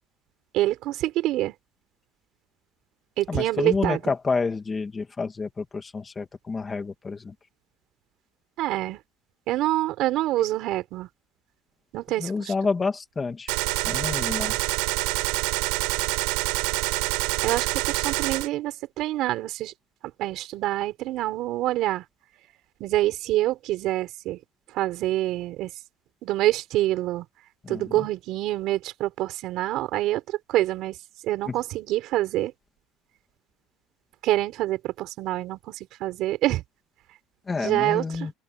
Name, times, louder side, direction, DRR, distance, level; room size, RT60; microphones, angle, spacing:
voice 1, 0.5-1.5 3.2-4.1 8.6-9.0 9.5-11.1 11.9-12.3 17.4-19.7 20.2-22.0 22.8-24.4 24.7-25.7 26.2-27.3 27.7-31.0 31.2-32.5 34.2-36.6 37.6-38.0, right 15 dB, 45° right, 5.8 m, -26 dB
voice 2, 3.3-7.3 12.2-13.5 13.8-14.6 27.6-28.1 31.5-31.6 37.5-38.3, left 4 dB, 15° left, 2.3 m, -29 dB
Gunshot gunfire, 13.5-18.5, right 28 dB, 85° right, 4.3 m, -26 dB
open air
cardioid pair, 175°, 0 cm